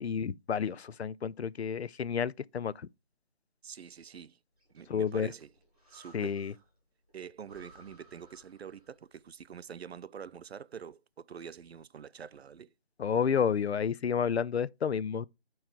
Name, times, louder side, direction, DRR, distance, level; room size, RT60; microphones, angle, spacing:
voice 1, 0.0-2.7 4.9-5.3 6.1-6.5 13.0-15.3, left 7 dB, 90° left, 0.5 m, -30 dB
voice 2, 3.6-4.4 4.7-5.5 5.9-6.4 7.1-12.7, right 7 dB, 75° right, 0.5 m, -46 dB
Breathing, 4.6-6.8 7.1-7.2 7.4-9.1, right 1 dB, 10° right, 1.1 m, -59 dB
8.9 x 3.2 x 4.6 m
figure-of-eight pair, 175°, 32 cm